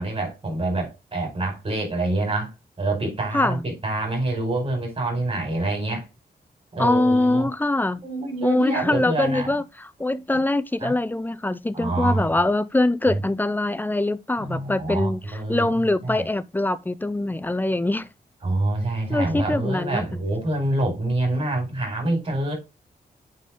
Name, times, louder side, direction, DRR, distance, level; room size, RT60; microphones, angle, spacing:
voice 1, 0.0-2.5 2.8-6.0 6.7-7.5 8.0-9.5 10.1-10.4 10.8-10.9 11.7-12.3 13.1-13.2 14.4-15.7 16.0-16.2 18.4-22.5, right 2 dB, 40° right, 4.9 m, -26 dB
voice 2, 3.3-3.6 6.8-8.0 8.4-18.1 19.1-20.1, left 2 dB, 10° left, 0.5 m, -23 dB
8.3 x 4.3 x 3.7 m
wide cardioid pair, 105°, 16 cm